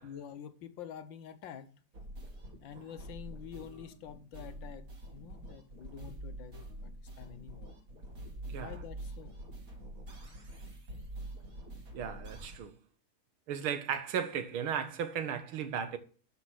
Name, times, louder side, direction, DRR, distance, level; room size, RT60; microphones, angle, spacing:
voice 1, 0.0-1.7 2.6-4.9 5.1-6.5 6.8-6.9 7.2-7.7 8.5-9.3, left 8 dB, 70° left, 1.5 m, -47 dB
sound 1, 1.9-12.6, right 1 dB, 40° right, 2.6 m, -46 dB
voice 2, 8.5-8.8 11.9-12.7 13.5-16.0, right 8 dB, 80° right, 2.0 m, -35 dB
11.5 x 5.1 x 6.2 m
omnidirectional pair, 2.3 m